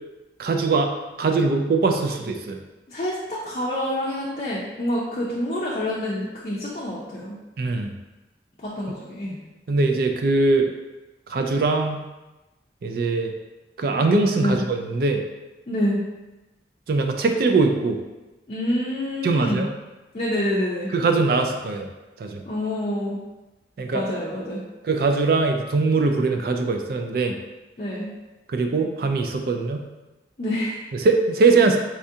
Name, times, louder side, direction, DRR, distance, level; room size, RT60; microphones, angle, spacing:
voice 1, 0.4-0.9 1.2-2.6 7.6-7.9 9.7-10.7 11.3-12.0 12.8-13.3 13.8-15.2 16.9-18.0 19.2-19.7 20.9-21.9 22.2-22.4 23.8-24.0 24.8-27.4 28.5-29.8 31.0-31.8, right 3 dB, 55° right, 4 dB, 0.3 m, -21 dB
voice 2, 2.9-7.4 8.6-9.4 14.4-14.6 15.7-16.0 18.5-19.7 20.1-20.9 22.5-23.2 23.9-24.6 27.8-28.1 30.4-30.8, left 1 dB, 40° left, -6 dB, 0.5 m, -27 dB
4.3 x 2.4 x 2.7 m, 1.1 s
head